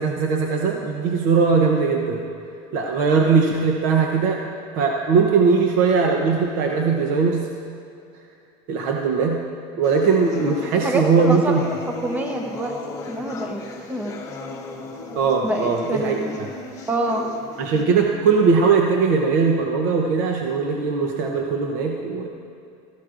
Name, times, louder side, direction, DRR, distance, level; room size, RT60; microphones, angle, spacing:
voice 1, 0.0-2.2 2.7-4.4 4.8-7.5 8.7-9.5 9.8-11.6 15.1-16.5 17.6-22.3, right 5 dB, 60° right, 2 dB, 0.9 m, -20 dB
sound 1, 9.8-17.8, left 4 dB, 20° left, 1.0 m, -36 dB
voice 2, 10.8-12.7 13.1-13.6 13.9-14.2 15.4-16.4 16.9-17.3, right 1 dB, 10° right, 3 dB, 0.8 m, -26 dB
16.5 x 14.5 x 2.5 m, 2.5 s
cardioid pair, 160°, 15 cm